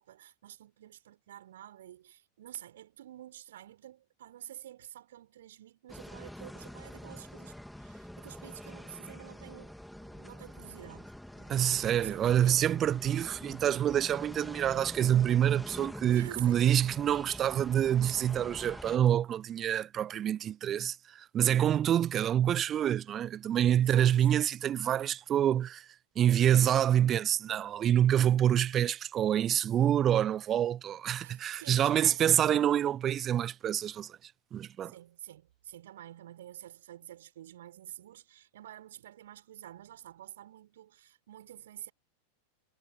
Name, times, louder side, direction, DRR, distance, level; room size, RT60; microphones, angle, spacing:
voice 1, 0.0-12.7 16.1-16.7 23.8-24.6 31.2-32.5 34.8-41.9, right 12 dB, 60° right, 4.1 m, -49 dB
sound 1, 5.9-19.0, left 1 dB, ahead, 3.1 m, -46 dB
voice 2, 11.5-25.9 26.2-34.2 34.5-34.9, right 10 dB, 30° right, 0.8 m, -27 dB
figure-of-eight pair, 90°, 0 cm